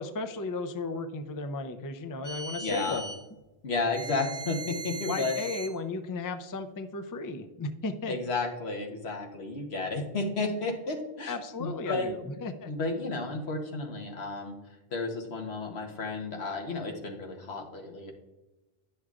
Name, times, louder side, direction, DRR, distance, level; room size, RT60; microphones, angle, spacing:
voice 1, 0.0-3.0 5.1-8.1 11.3-12.2 12.4-12.7, left 3 dB, 35° left, 8 dB, 0.3 m, -35 dB
sound 1, 2.2-3.2 3.9-5.8, right 3 dB, 45° right, 0.8 m, -39 dB
voice 2, 2.6-3.0 3.6-5.4 8.1-11.3 11.6-12.3 12.6-14.5 14.9-18.1, left 3 dB, 85° left, 2 dB, 1.3 m, -32 dB
10.5 x 6.3 x 2.4 m, 1.0 s
omnidirectional pair, 1.0 m